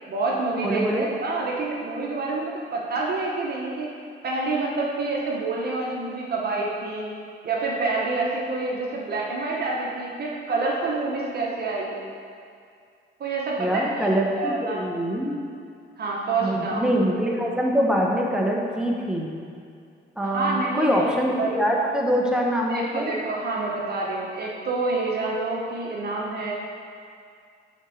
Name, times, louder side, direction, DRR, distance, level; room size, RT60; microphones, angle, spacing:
voice 1, 0.1-3.9 4.2-7.1 7.4-12.0 13.2-14.1 14.4-14.9 16.0-16.8 20.2-21.1 21.4-21.6 22.7-26.5, right 3 dB, 55° right, -3 dB, 1.2 m, -27 dB
voice 2, 0.6-1.1 13.6-15.4 16.4-19.3 20.2-23.1, equal, 5° right, -1 dB, 1.2 m, -24 dB
6.5 x 4.5 x 6.4 m, 2.3 s
cardioid pair, 90°, 20 cm